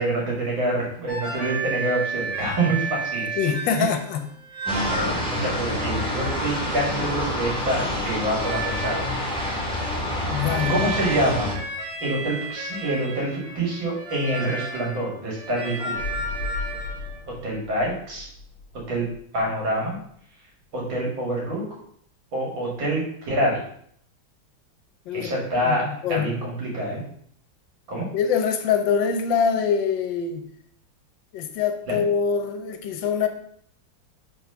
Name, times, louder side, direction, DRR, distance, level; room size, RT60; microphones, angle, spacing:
voice 1, 0.0-3.4 3.8-3.9 4.9-9.2 10.7-11.5 12.0-16.0 17.3-18.3 18.9-19.1 19.3-20.0 20.7-21.6 22.3-23.6 25.1-27.0 27.9-28.1 31.9-32.0, right 1 dB, 75° right, -3 dB, 2.9 m, -26 dB
sound 1, 1.1-7.7 8.4-17.2, right 3 dB, 50° right, 2.0 m, -33 dB
voice 2, 3.4-4.3 10.3-10.8 25.1-25.3 25.6-26.4 28.1-30.5 31.3-33.3, left 6 dB, 75° left, 7 dB, 1.4 m, -24 dB
sound 2, 4.7-11.5, left 1 dB, 5° left, 1.4 m, -27 dB
sound 3, 15.9-19.7 20.0-20.1, left 3 dB, 35° left, 1.1 m, -36 dB
4.5 x 4.2 x 5.5 m, 0.64 s
omnidirectional pair, 2.1 m